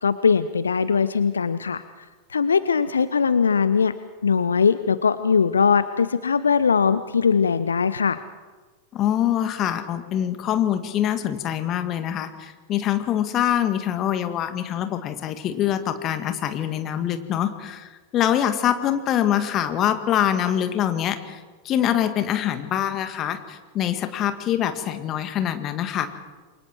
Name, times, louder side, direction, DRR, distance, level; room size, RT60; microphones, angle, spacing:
voice 1, 0.0-1.8 2.3-3.9 4.2-8.2, left 6 dB, 70° left, 14 dB, 0.7 m, -20 dB
voice 2, 8.9-21.4 21.6-26.1, left 10 dB, 35° left, 9 dB, 2.0 m, -24 dB
29.0 x 24.0 x 4.6 m, 1.3 s
figure-of-eight pair, 90°, 0 cm